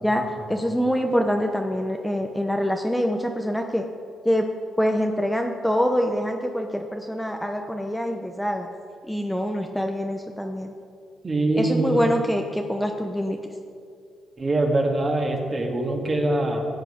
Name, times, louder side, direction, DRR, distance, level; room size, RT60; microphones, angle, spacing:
voice 1, 0.0-3.8 4.2-4.5 4.8-8.7 9.1-10.7 11.6-13.4, equal, 5° left, 3 dB, 0.7 m, -25 dB
voice 2, 11.2-12.1 14.4-16.7, right 2 dB, 35° right, 1 dB, 2.0 m, -23 dB
15.0 x 8.1 x 5.1 m, 2.4 s
cardioid pair, 90°, 0 cm